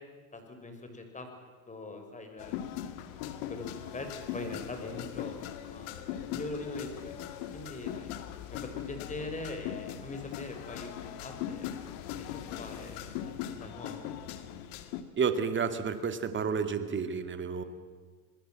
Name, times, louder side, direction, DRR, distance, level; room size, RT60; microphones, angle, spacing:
voice 1, 0.3-1.3 1.7-2.7 3.5-4.1 4.3-7.2 7.5-8.1 8.5-11.7 12.1-14.1, left 2 dB, 15° left, 5 dB, 5.2 m, -42 dB
sound 1, 2.4-15.0, left 11 dB, 60° left, 2.3 m, -40 dB
voice 2, 15.2-17.6, right 6 dB, 25° right, 9 dB, 2.3 m, -30 dB
27.5 x 20.5 x 7.6 m, 1.5 s
supercardioid pair, 110°, 47 cm